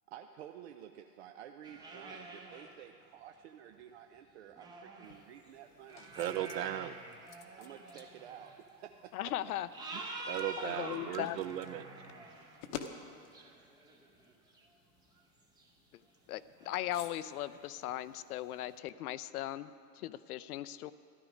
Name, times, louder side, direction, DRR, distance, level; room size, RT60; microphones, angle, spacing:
voice 1, 0.1-6.6 7.5-9.3, right 9 dB, 45° right, 6 dB, 0.5 m, -51 dB
sound 1, 1.6-2.8 3.5-3.6 4.5-8.6 9.2-9.3 9.7-12.7 13.3-14.7 15.2-15.3 15.6-15.7 16.1-16.2 16.5-17.6 18.7-18.8, right 3 dB, 10° right, 0.7 m, -48 dB
sound 2, 5.0-18.8, left 8 dB, 40° left, 0.9 m, -53 dB
voice 2, 6.2-6.9 10.3-11.9, right 12 dB, 80° right, 12 dB, 0.7 m, -36 dB
voice 3, 9.1-9.7 10.6-11.4 16.3-20.9, left 13 dB, 65° left, 16 dB, 0.6 m, -38 dB
13.5 x 11.5 x 5.1 m, 2.4 s
hypercardioid pair, 145°, 49 cm